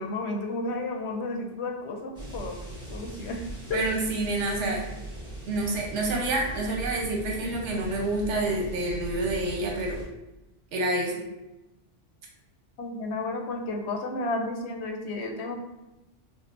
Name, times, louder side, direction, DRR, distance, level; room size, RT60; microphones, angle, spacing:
voice 1, 0.0-3.4 3.7-3.8 12.8-15.6, left 2 dB, 70° left, 2 dB, 0.8 m, -32 dB
sound 1, 2.2-10.1, right 1 dB, 5° right, 1.0 m, -40 dB
voice 2, 3.7-4.8 5.5-10.0 10.7-11.2, right 2 dB, 80° right, 0 dB, 1.0 m, -28 dB
5.4 x 2.0 x 2.4 m, 0.96 s
omnidirectional pair, 1.2 m